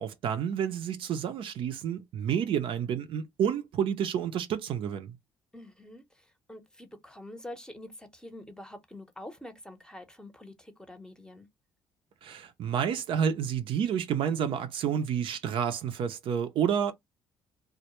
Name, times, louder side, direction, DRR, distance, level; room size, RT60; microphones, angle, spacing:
voice 1, 0.0-5.2 12.2-16.9, right 8 dB, 65° right, 0.5 m, -29 dB
voice 2, 5.5-11.5, left 1 dB, 10° left, 0.7 m, -46 dB
2.1 x 2.0 x 2.9 m
supercardioid pair, 65°, 10 cm